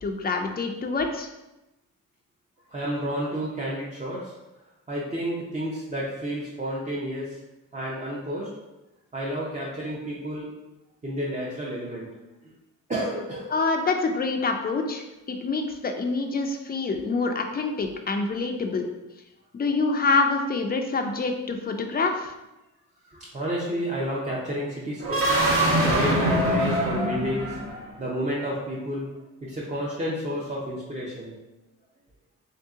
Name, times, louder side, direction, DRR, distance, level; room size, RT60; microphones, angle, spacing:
voice 1, 0.0-1.3 13.5-18.9 19.5-22.3, left 3 dB, 30° left, 4 dB, 0.4 m, -26 dB
voice 2, 2.7-4.3 4.9-7.4 7.7-8.6 9.1-10.5 11.0-12.2 12.4-12.5 12.9-13.5 23.1-25.4 25.8-27.6 28.0-29.1 29.4-31.4, equal, 25° right, -6 dB, 0.7 m, -30 dB
sound 1, 25.0-28.0, right 1 dB, 45° right, 1.0 m, -23 dB
3.5 x 2.8 x 3.6 m, 0.98 s
cardioid pair, 110°, 32 cm